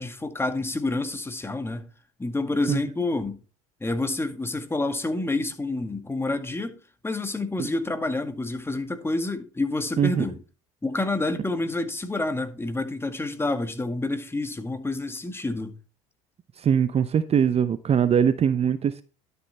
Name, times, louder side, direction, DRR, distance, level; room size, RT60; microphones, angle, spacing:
voice 1, 0.0-1.9 2.2-3.4 3.8-6.8 7.0-10.4 10.8-15.7, left 2 dB, 15° left, 1.9 m, -28 dB
voice 2, 16.6-19.0, right 8 dB, 35° right, 0.8 m, -22 dB
11.5 x 6.8 x 4.2 m
hypercardioid pair, 75°, 18 cm